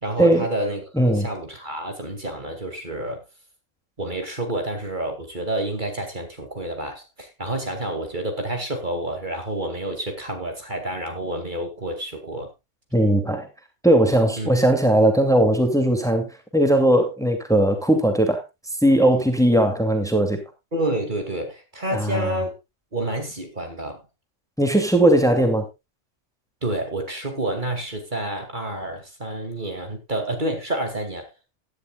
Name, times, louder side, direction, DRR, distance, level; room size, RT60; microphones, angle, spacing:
voice 1, 0.0-0.8 1.1-3.2 4.0-12.5 14.4-14.5 20.7-22.5 22.9-24.0 26.6-31.3, right 1 dB, 40° right, 2.6 m, -29 dB
voice 2, 0.9-1.3 12.9-13.5 13.8-18.4 18.8-20.4 21.9-22.3 24.6-25.7, right 1 dB, 5° left, 2.5 m, -18 dB
16.5 x 11.0 x 2.4 m
omnidirectional pair, 1.3 m